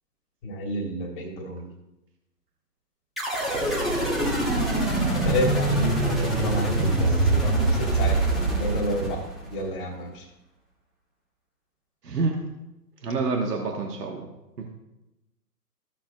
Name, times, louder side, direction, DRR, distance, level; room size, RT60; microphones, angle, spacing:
voice 1, 0.4-1.7 5.2-8.2 8.6-9.2 9.5-10.3, left 1 dB, 30° left, 2 dB, 1.9 m, -30 dB
sound 1, 3.2-9.6, right 2 dB, ahead, 1.0 m, -24 dB
voice 2, 12.0-12.4 13.0-14.3 14.6-14.7, right 4 dB, 70° right, 1 dB, 1.5 m, -27 dB
14.5 x 7.1 x 2.4 m, 0.94 s
figure-of-eight pair, 135°, 50 cm